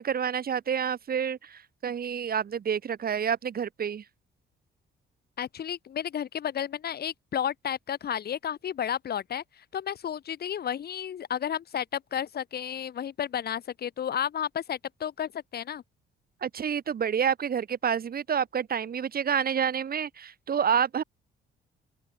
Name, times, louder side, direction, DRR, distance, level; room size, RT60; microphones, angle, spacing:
voice 1, 0.0-4.0 16.4-21.0, right 7 dB, 50° right, 2.0 m, -28 dB
voice 2, 5.4-9.4 9.7-15.8, left 9 dB, 55° left, 1.2 m, -32 dB
open air
cardioid pair, 90°, 20 cm